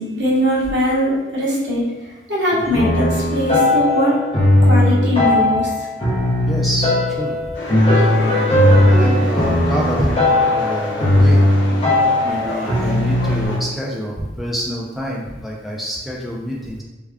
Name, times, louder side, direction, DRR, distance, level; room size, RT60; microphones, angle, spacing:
voice 1, 0.0-1.8 2.3-4.2 4.6-5.7, equal, 70° right, -6 dB, 1.1 m, -20 dB
voice 2, 2.5-2.8 6.5-7.4 8.1-10.2 10.5-11.5 12.2-16.8, equal, ahead, -4 dB, 0.3 m, -26 dB
sound 1, 2.7-13.5, left 1 dB, 35° left, 0.8 m, -16 dB
sound 2, 7.5-13.6, left 1 dB, 80° left, 0.8 m, -29 dB
3.5 x 2.2 x 3.4 m, 1.1 s
head